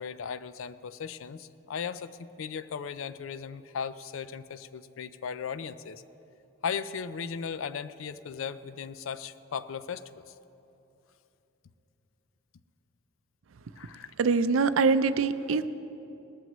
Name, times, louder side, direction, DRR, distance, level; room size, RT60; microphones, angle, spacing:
voice 1, 0.0-2.1 2.4-6.0 6.6-10.2 13.8-14.1, left 6 dB, 80° left, 14 dB, 0.4 m, -37 dB
voice 2, 14.2-15.7, right 4 dB, 80° right, 13 dB, 0.5 m, -24 dB
19.5 x 14.0 x 3.1 m, 2.9 s
head